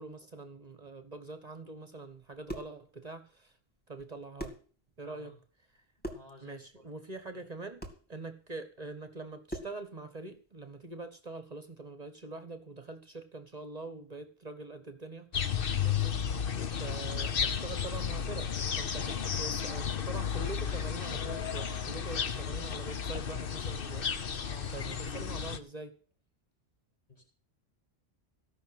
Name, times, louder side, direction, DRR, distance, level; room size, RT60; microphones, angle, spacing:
voice 1, 0.0-3.5 3.9-4.6 5.0-5.4 5.7-5.8 6.4-16.2 16.8-24.1 24.7-26.0, right 3 dB, 40° right, 9 dB, 1.4 m, -44 dB
sound 1, 2.2-2.8 4.0-4.1 4.4-4.7 6.0-6.4 7.8-8.1 9.5-9.8, equal, 10° left, 2.3 m, -41 dB
voice 2, 5.0-5.4 6.0-6.6 19.0-19.2 24.4-24.7 27.1-27.2, left 3 dB, 35° left, -2 dB, 4.5 m, -53 dB
sound 2, 15.3-25.6, left 7 dB, 60° left, 1.1 m, -33 dB
16.0 x 6.1 x 7.7 m, 0.39 s
omnidirectional pair, 1.1 m